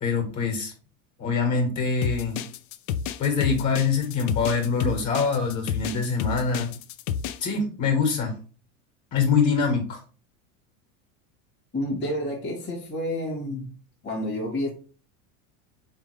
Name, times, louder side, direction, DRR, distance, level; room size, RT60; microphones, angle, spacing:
voice 1, 0.0-0.7 1.2-2.4 3.2-6.7 7.4-8.3 9.1-10.0, left 5 dB, 45° left, 1.6 m, -24 dB
sound 1, 2.0-7.5, left 8 dB, 80° left, 0.5 m, -30 dB
voice 2, 11.7-13.7 14.0-14.7, left 1 dB, 25° left, 1.3 m, -29 dB
3.6 x 3.4 x 3.2 m
supercardioid pair, 120°, 42 cm